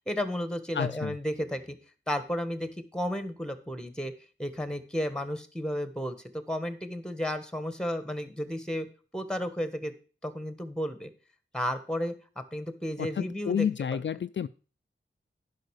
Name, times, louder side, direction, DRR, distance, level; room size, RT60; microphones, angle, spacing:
voice 1, 0.1-1.8 2.1-4.1 4.4-8.9 9.1-9.9 10.2-11.1 11.5-13.7 13.9-14.0, equal, 5° left, 11 dB, 1.6 m, -33 dB
voice 2, 0.7-1.2 13.0-14.5, left 8 dB, 60° left, 12 dB, 0.4 m, -30 dB
10.5 x 5.6 x 6.5 m, 0.37 s
wide cardioid pair, 60°, 21 cm